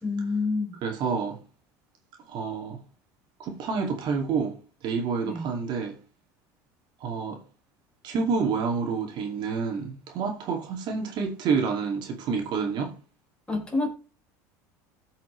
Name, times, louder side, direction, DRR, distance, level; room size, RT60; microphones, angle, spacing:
voice 1, 0.0-0.8 5.2-5.5 13.5-13.9, left 3 dB, 10° left, 3.9 m, -28 dB
voice 2, 0.8-1.4 2.3-2.8 3.4-4.6 4.8-6.0 7.0-7.4 8.0-12.9, right 5 dB, 55° right, 2.5 m, -28 dB
15.5 x 5.8 x 3.3 m
supercardioid pair, 90°, 9 cm